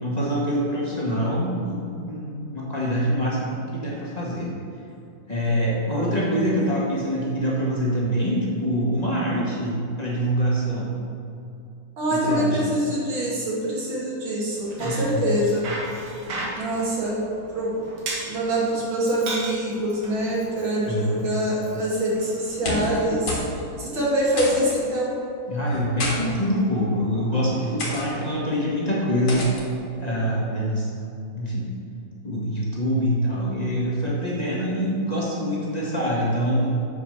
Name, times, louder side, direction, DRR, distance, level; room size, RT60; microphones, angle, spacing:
voice 1, 0.0-4.5 5.3-11.0 12.1-12.8 14.8-15.2 20.8-21.3 25.5-29.6 30.0-30.9 31.3-31.7 32.2-36.9, equal, 20° left, -6 dB, 1.7 m, -25 dB
voice 2, 12.0-15.6 16.6-17.2 17.5-17.8 18.3-25.2, right 1 dB, 65° right, -5 dB, 2.8 m, -25 dB
Bicycle, 14.5-22.9, right 2 dB, 85° right, 2.5 m, -37 dB
sound 1, 22.5-23.0 23.3-23.5 23.8-23.9 24.4-24.8 25.7-26.2 26.9-27.2 27.8-28.1 29.3-29.6, left 2 dB, 75° left, 2.6 m, -29 dB
8.6 x 5.1 x 6.4 m, 2.6 s
omnidirectional pair, 2.3 m